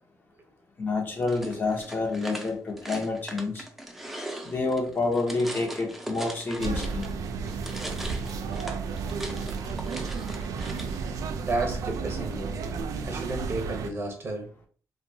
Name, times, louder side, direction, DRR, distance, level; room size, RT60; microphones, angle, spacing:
voice 1, 0.8-3.6 4.4-7.0, left 3 dB, 35° left, 1 dB, 0.7 m, -28 dB
sound 1, 1.2-7.2 7.5-11.0, right 1 dB, 5° right, 0.5 m, -40 dB
sound 2, 6.6-13.9, right 5 dB, 80° right, 0.3 m, -32 dB
voice 2, 11.4-12.6 13.0-14.5, right 2 dB, 45° right, 3 dB, 0.8 m, -32 dB
2.8 x 2.2 x 2.6 m, 0.43 s
cardioid pair, 100°, 6 cm